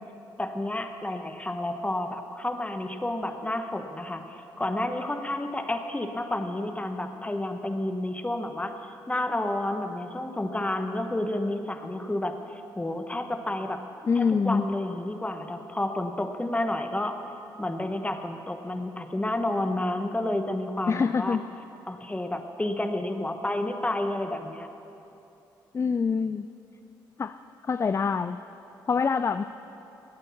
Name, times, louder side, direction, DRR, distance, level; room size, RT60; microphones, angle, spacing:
voice 1, 0.4-8.7 9.1-13.8 14.1-17.2 17.6-21.4 21.9-24.7, left 1 dB, 15° left, 6 dB, 1.2 m, -30 dB
voice 2, 14.0-14.7 20.9-21.4 25.7-26.5 27.2-27.4 27.6-28.4 28.9-29.4, left 5 dB, 30° left, 12 dB, 0.4 m, -25 dB
12.5 x 8.9 x 7.1 m, 2.9 s
supercardioid pair, 55°, 9 cm